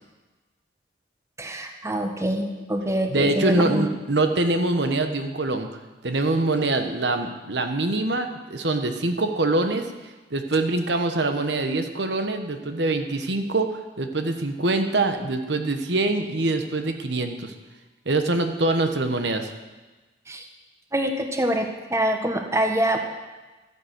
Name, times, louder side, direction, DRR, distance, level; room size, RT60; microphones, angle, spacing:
voice 1, 1.4-3.9 20.3-20.5 20.9-23.0, right 1 dB, 15° right, 4 dB, 1.3 m, -25 dB
voice 2, 3.1-5.7 6.0-9.9 10.3-17.5 18.0-19.5, right 2 dB, 65° right, 6 dB, 1.2 m, -24 dB
13.0 x 10.5 x 8.1 m, 1.2 s
head